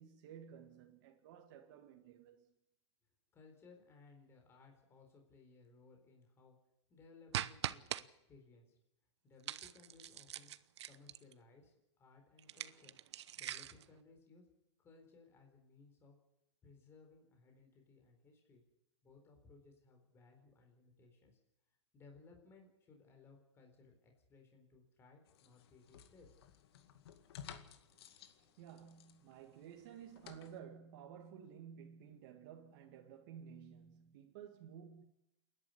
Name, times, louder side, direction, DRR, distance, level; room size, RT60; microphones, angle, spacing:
voice 1, 0.0-2.5 27.3-27.5 28.1-35.0, right 8 dB, 45° right, 2.1 m, -54 dB
voice 2, 3.3-6.6 6.9-8.8 9.2-10.6 10.8-13.0 13.4-14.4 14.8-16.2 16.6-18.6 19.0-21.4 21.9-26.3, left 4 dB, 15° left, 4.2 m, -62 dB
sound 1, 7.3-8.0 9.4-11.3 12.4-13.8, right 11 dB, 70° right, 0.9 m, -42 dB
sound 2, 25.3-30.6, left 9 dB, 60° left, 2.1 m, -57 dB
28.5 x 11.0 x 9.7 m
hypercardioid pair, 155°, 15 cm